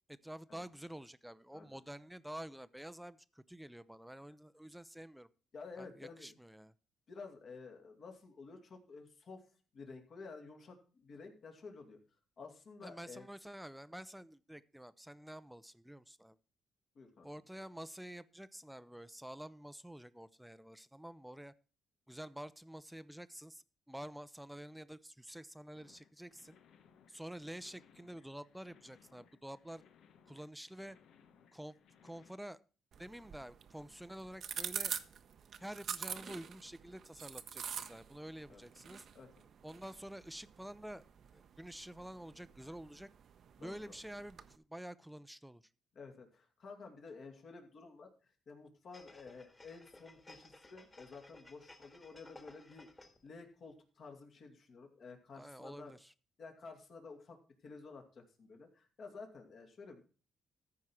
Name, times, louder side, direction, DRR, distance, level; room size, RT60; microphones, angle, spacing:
voice 1, 0.1-5.3 5.8-6.7 12.8-16.4 17.2-21.5 22.1-26.6 27.1-29.8 30.3-31.0 31.5-31.7 32.0-32.6 33.0-34.9 35.6-39.1 39.6-41.1 41.3-43.1 43.6-45.6 55.3-56.1, right 1 dB, 5° right, 16 dB, 0.5 m, -49 dB
voice 2, 5.5-6.3 7.1-9.4 9.7-12.0 12.4-13.3 17.0-17.3 38.5-38.6 39.1-39.3 43.6-43.9 45.9-52.9 53.2-55.9 56.4-57.4 57.6-60.0, left 4 dB, 55° left, 3 dB, 2.5 m, -52 dB
sound 1, 25.8-32.3, left 7 dB, 75° left, 0.9 m, -66 dB
sound 2, 32.9-44.6, right 8 dB, 60° right, 0.8 m, -46 dB
sound 3, 48.9-53.3 53.7-53.8, left 2 dB, 20° left, 1.8 m, -58 dB
14.0 x 4.8 x 5.7 m, 0.37 s
cardioid pair, 90°, 0 cm